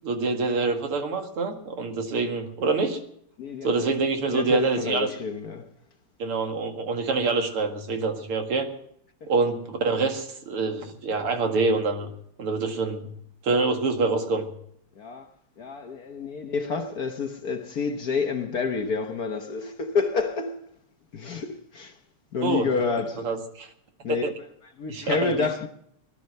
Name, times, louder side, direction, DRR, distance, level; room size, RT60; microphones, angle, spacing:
voice 1, 0.0-3.0 3.6-5.1 6.2-8.7 9.3-12.1 12.4-13.0 13.4-14.5 22.4-22.7 23.2-23.7 24.2-24.3 24.9-25.3, right 3 dB, 80° right, 2.8 m, -26 dB
voice 2, 3.4-3.9 4.3-5.7 14.9-15.3 15.6-20.7 21.1-22.0 22.3-23.3 24.0-24.3 24.8-25.7, left 4 dB, 50° left, 1.3 m, -29 dB
18.5 x 12.0 x 6.6 m
omnidirectional pair, 2.4 m